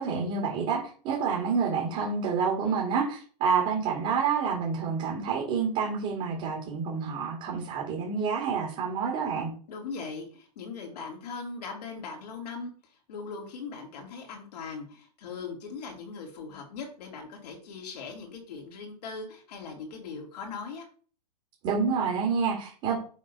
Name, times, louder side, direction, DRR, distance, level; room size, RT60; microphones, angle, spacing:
voice 1, 0.0-9.5 21.6-23.0, right 5 dB, 35° right, -1 dB, 2.4 m, -28 dB
voice 2, 9.7-20.9, left 4 dB, 70° left, 1 dB, 2.9 m, -40 dB
7.2 x 3.9 x 5.5 m, 0.42 s
hypercardioid pair, 150°, 21 cm